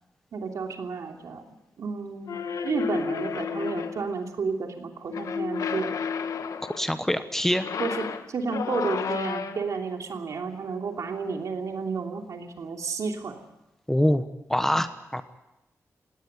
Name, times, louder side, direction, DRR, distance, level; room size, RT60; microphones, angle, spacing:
voice 1, 0.3-1.4 1.8-2.4 2.6-5.9 7.8-13.4, right 4 dB, 75° right, 3 dB, 3.0 m, -31 dB
sound 1, 2.3-4.1 5.1-6.9 7.5-9.8, left 6 dB, 85° left, 1.2 m, -31 dB
voice 2, 6.6-7.7 13.9-15.2, left 1 dB, 5° left, 10 dB, 1.1 m, -25 dB
18.0 x 18.0 x 9.2 m, 0.93 s
wide cardioid pair, 135°, 6 cm